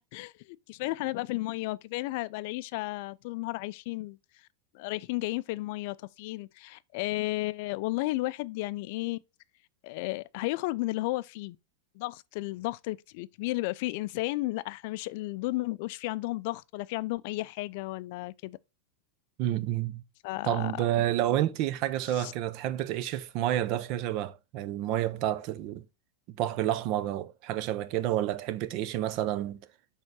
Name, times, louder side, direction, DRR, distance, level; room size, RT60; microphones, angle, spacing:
voice 1, 0.1-4.2 4.7-9.2 9.8-11.6 12.0-18.6 20.2-20.8 22.2-22.3, left 20 dB, 60° left, 0.3 m, -33 dB
voice 2, 19.4-20.0 20.4-25.8 26.4-29.6, right 12 dB, 55° right, 0.6 m, -29 dB
6.4 x 3.6 x 4.0 m
hypercardioid pair, 105°, 0 cm